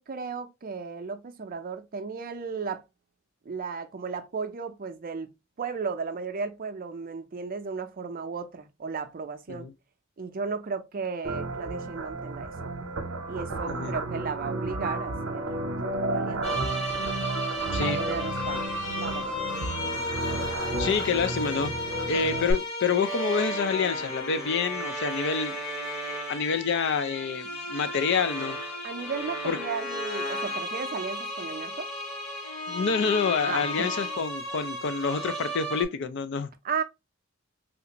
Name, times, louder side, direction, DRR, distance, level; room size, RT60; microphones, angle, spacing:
voice 1, 0.0-2.8 3.5-5.3 5.6-9.7 10.2-12.5 13.3-16.5 17.8-18.6 19.0-19.4 22.1-22.2 28.8-31.9 33.4-33.9 36.6-36.8, right 5 dB, 45° right, 0.5 m, -35 dB
sound 1, 11.2-22.5, right 2 dB, 75° right, 0.8 m, -32 dB
sound 2, 16.4-35.8, equal, 35° left, 1.6 m, -34 dB
voice 2, 20.8-21.7 22.0-25.6 26.3-28.6 29.5-29.6 32.7-36.5, left 5 dB, 60° left, 0.4 m, -27 dB
3.3 x 2.5 x 2.8 m
head